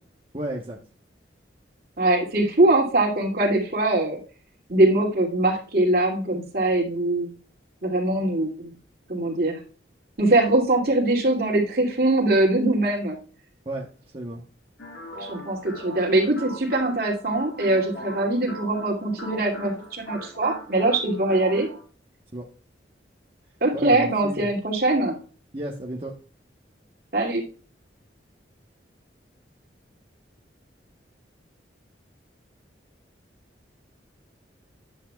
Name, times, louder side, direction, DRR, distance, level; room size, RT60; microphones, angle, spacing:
voice 1, 0.3-0.8 13.6-13.9 14.1-14.4 22.3-22.4 23.7-24.5 25.5-26.1, right 1 dB, 30° right, -2 dB, 1.1 m, -32 dB
voice 2, 2.0-4.2 4.7-7.3 7.8-8.7 9.1-9.6 10.2-13.2 15.2-21.7 23.6-25.1 27.1-27.4, right 2 dB, 55° right, 0 dB, 2.6 m, -22 dB
sound 1, 14.8-21.8, right 1 dB, 85° left, 4.3 m, -39 dB
10.0 x 8.5 x 2.3 m, 0.38 s
head